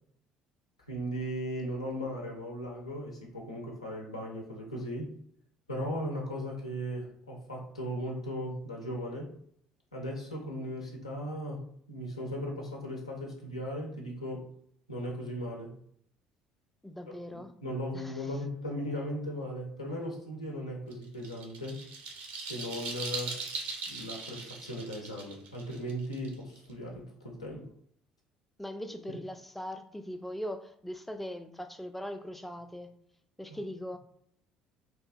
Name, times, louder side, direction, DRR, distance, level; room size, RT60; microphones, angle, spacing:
voice 1, 0.9-5.1 5.7-9.3 9.9-11.6 11.9-14.5 14.9-15.8 17.3-21.8 22.4-23.4 23.9-27.7, equal, 90° left, -1 dB, 0.5 m, -37 dB
voice 2, 16.8-17.5 17.9-18.3 28.6-32.9 33.4-34.0, equal, 5° left, 7 dB, 0.3 m, -40 dB
sound 1, 20.9-26.7, right 4 dB, 60° right, 0.5 m, -40 dB
2.9 x 2.2 x 2.6 m, 0.65 s
figure-of-eight pair, 55°, 3 cm